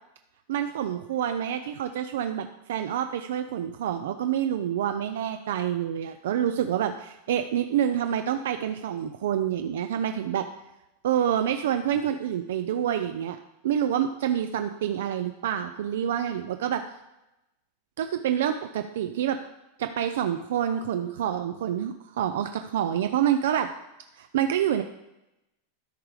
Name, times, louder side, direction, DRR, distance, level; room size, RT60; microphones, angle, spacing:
voice 1, 0.5-10.5 11.0-13.4 13.6-16.8 18.0-19.4 19.8-23.7 24.2-24.8, right 10 dB, 70° right, 8 dB, 0.5 m, -27 dB
12.5 x 4.9 x 4.8 m, 0.92 s
supercardioid pair, 175°, 0 cm